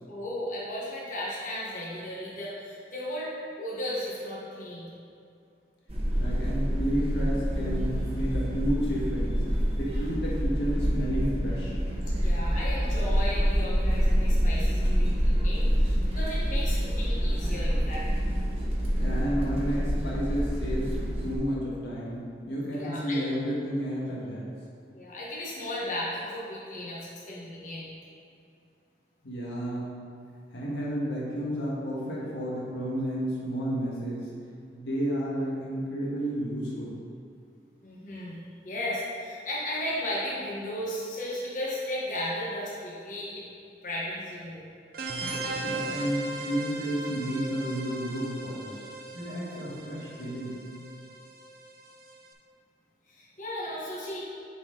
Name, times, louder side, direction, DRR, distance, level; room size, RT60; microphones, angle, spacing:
voice 1, 0.1-4.9 12.1-18.1 22.8-23.2 24.9-27.9 37.8-38.4 38.6-43.5 43.8-44.6 53.1-54.2, left 1 dB, 45° left, -7 dB, 1.3 m, -35 dB
sound 1, 5.9-21.3, equal, 35° right, 1.0 m, -27 dB
voice 2, 6.2-11.8 19.0-21.0 21.2-24.5 29.2-29.9 30.5-34.3 34.7-37.0 45.6-48.8 49.1-50.6, equal, 75° left, -6 dB, 1.6 m, -31 dB
sound 2, 44.9-52.3, right 2 dB, 55° right, 0.7 m, -37 dB
8.8 x 4.4 x 3.8 m, 2.4 s
head